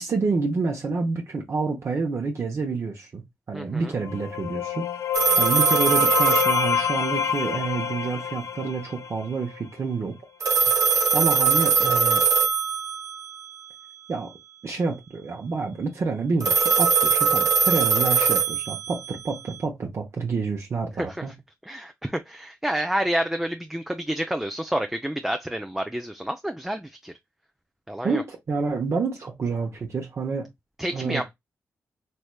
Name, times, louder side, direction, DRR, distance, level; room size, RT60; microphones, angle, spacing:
voice 1, 0.0-3.2 3.5-5.1 5.4-10.1 11.1-12.2 14.1-14.3 14.6-21.4 28.0-30.5 30.9-31.3, right 4 dB, 55° right, 0.8 m, -28 dB
voice 2, 3.5-3.9 21.0-21.2 21.7-27.1 27.9-28.2 30.8-31.3, right 1 dB, 5° right, 0.4 m, -29 dB
sound 1, 3.9-9.6, left 8 dB, 70° left, 0.4 m, -27 dB
sound 2, 5.1-7.4 10.4-13.3 16.4-19.3, right 5 dB, 75° right, 0.9 m, -21 dB
3.2 x 3.1 x 2.2 m
cardioid pair, 55°, 6 cm